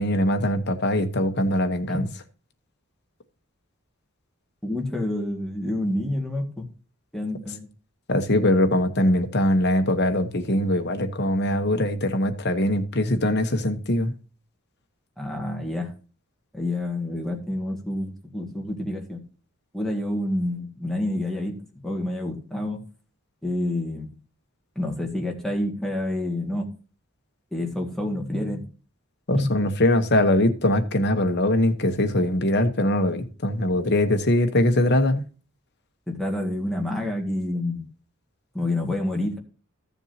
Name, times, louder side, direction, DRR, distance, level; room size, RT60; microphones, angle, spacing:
voice 1, 0.0-2.0 8.1-14.1 29.3-35.2, left 1 dB, 50° left, 1.1 m, -22 dB
voice 2, 4.6-6.6 7.1-7.7 15.2-15.9 16.5-19.2 19.7-21.5 21.8-22.8 23.4-24.1 24.8-26.7 27.5-28.7 29.3-29.5 36.1-37.8 38.5-39.4, left 1 dB, ahead, 2.0 m, -28 dB
15.0 x 7.1 x 2.8 m
head